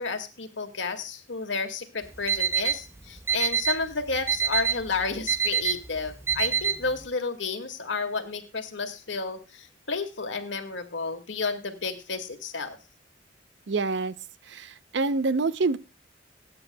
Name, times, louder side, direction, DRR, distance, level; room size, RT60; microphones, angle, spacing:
voice 1, 0.0-12.8, left 4 dB, 80° left, 1.9 m, -31 dB
Alarm, 2.0-7.0, right 7 dB, 15° right, 0.6 m, -27 dB
voice 2, 13.7-14.1 14.5-15.8, right 3 dB, 65° right, 0.6 m, -26 dB
24.5 x 9.5 x 2.2 m
head